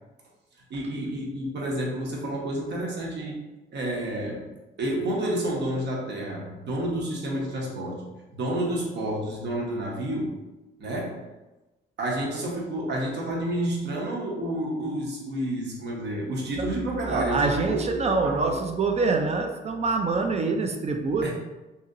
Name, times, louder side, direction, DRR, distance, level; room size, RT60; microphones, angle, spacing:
voice 1, 0.7-3.4 3.7-4.5 4.8-10.4 10.8-11.3 12.0-18.5 21.2-21.3, right 1 dB, 60° right, -2 dB, 0.9 m, -30 dB
voice 2, 17.1-21.3, right 3 dB, 35° right, 4 dB, 0.4 m, -25 dB
2.8 x 2.8 x 2.5 m, 1.1 s
cardioid pair, 90°, 20 cm